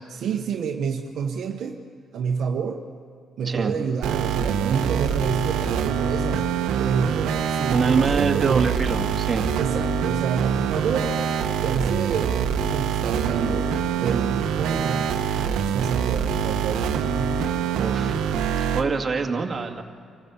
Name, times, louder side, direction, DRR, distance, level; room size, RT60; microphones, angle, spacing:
voice 1, 0.1-1.8 2.1-2.8 3.4-6.5 6.8-8.7 9.6-11.1 11.6-13.7 14.0-17.4, right 6 dB, 65° right, 3 dB, 1.1 m, -28 dB
sound 1, 4.0-18.8, right 7 dB, 90° right, 1.1 m, -25 dB
voice 2, 7.7-9.5 17.8-18.2 18.7-19.8, right 4 dB, 35° right, 2 dB, 2.0 m, -24 dB
26.5 x 15.0 x 7.0 m, 2.4 s
cardioid pair, 90°, 0 cm